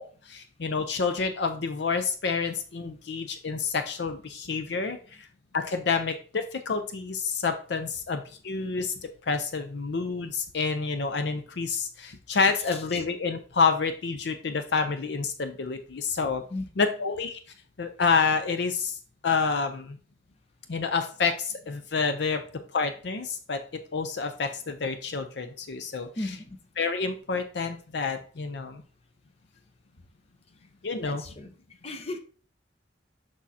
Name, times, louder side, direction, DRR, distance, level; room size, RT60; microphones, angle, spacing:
voice 1, 0.0-5.3 5.5-16.4 16.8-17.4 17.8-19.0 19.2-20.0 20.7-22.4 22.7-23.6 23.9-26.1 26.8-28.8 30.8-31.2, left 4 dB, 70° left, 8 dB, 0.6 m, -28 dB
voice 2, 12.6-13.0 16.5-16.8 26.1-26.6 30.5-30.7 31.0-32.2, left 2 dB, 35° left, 6 dB, 0.8 m, -38 dB
6.2 x 6.2 x 2.8 m, 0.41 s
head